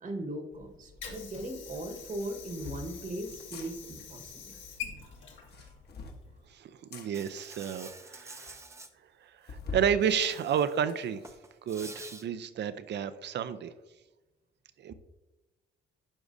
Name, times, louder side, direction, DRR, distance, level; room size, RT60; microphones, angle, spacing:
voice 1, 0.0-4.6, right 1 dB, 40° right, 5 dB, 1.3 m, -39 dB
Water / Sink (filling or washing), 0.5-6.5, left 7 dB, 80° left, 1.7 m, -46 dB
sound 1, 1.1-1.3 2.2-2.9 3.4-3.7 5.3-6.2 6.9-7.1 7.7-7.8 8.0-8.1 8.5-8.6 9.5-9.9 10.4-11.3, left 3 dB, 55° left, 1.1 m, -42 dB
voice 2, 6.5-8.6 9.2-11.2 11.6-13.7 14.8-14.9, right 8 dB, 60° right, 13 dB, 0.6 m, -31 dB
Insect, 7.1-8.9 10.0-10.8 11.1-12.2, right 2 dB, 15° right, 0.5 m, -48 dB
11.5 x 4.8 x 2.6 m, 1.0 s
cardioid pair, 90°, 20 cm